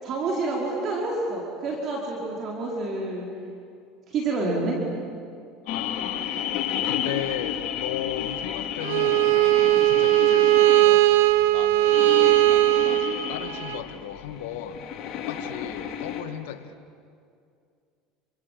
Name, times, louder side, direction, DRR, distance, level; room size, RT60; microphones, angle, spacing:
voice 1, 0.0-3.3 4.1-4.8 9.6-9.8, right 3 dB, 50° right, -1 dB, 5.0 m, -28 dB
voice 2, 5.7-6.3 6.8-9.3 9.9-11.2 11.5-12.2 12.6-14.8 15.1-16.7, left 11 dB, 80° left, 9 dB, 1.8 m, -36 dB
sound 1, 5.7-16.2, left 9 dB, 55° left, 3.4 m, -32 dB
Bowed string instrument, 8.8-13.8, right 18 dB, 80° right, 0.8 m, -19 dB
29.5 x 24.5 x 7.8 m, 2.4 s
supercardioid pair, 95°, 0 cm